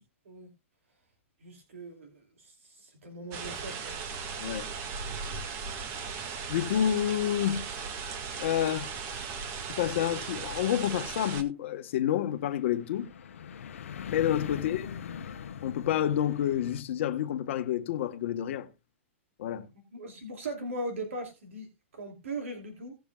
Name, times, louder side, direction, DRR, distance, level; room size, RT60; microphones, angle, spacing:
voice 1, 1.4-3.9 6.2-6.3 14.5-14.6 19.9-23.0, right 1 dB, 85° right, 2.8 m, -39 dB
sound 1, 3.3-11.4, right 5 dB, 40° right, 1.8 m, -37 dB
voice 2, 4.4-4.7 6.5-7.6 8.4-8.9 9.8-13.1 14.1-15.0 15.6-18.7 19.4-19.7, left 10 dB, 65° left, 1.4 m, -29 dB
sound 2, 11.1-16.8, left 7 dB, 80° left, 1.0 m, -42 dB
18.0 x 7.0 x 2.3 m
hypercardioid pair, 130°, 7 cm